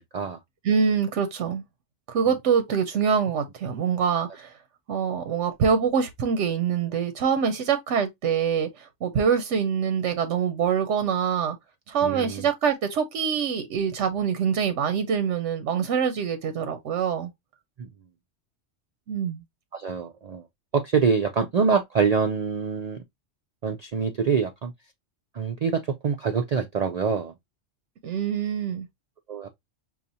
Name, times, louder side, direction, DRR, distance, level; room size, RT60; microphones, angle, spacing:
voice 1, 0.6-1.6 2.1-4.5 4.9-11.6 11.9-17.3 19.1-19.4 28.0-28.9, right 7 dB, 90° right, 1.0 m, -25 dB
voice 2, 12.0-12.5 17.8-17.9 19.7-20.4 20.7-23.0 23.6-24.7 25.3-27.3 29.3-29.5, right 5 dB, 60° right, 0.4 m, -25 dB
5.7 x 2.4 x 2.6 m
omnidirectional pair, 1.2 m